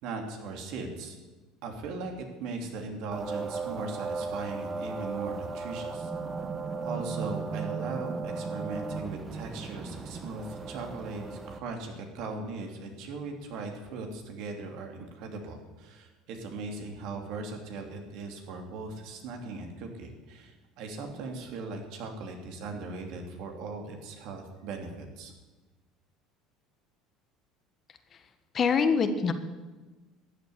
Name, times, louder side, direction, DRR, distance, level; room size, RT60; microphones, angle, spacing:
voice 1, 0.0-1.2 1.6-6.1 6.8-25.3, right 3 dB, 70° right, 3 dB, 3.0 m, -39 dB
sound 1, 3.1-11.6, right 4 dB, 25° right, 1.2 m, -36 dB
voice 2, 28.5-29.3, left 5 dB, 40° left, 9 dB, 1.4 m, -24 dB
13.5 x 8.0 x 10.0 m, 1.2 s
supercardioid pair, 105°, 0 cm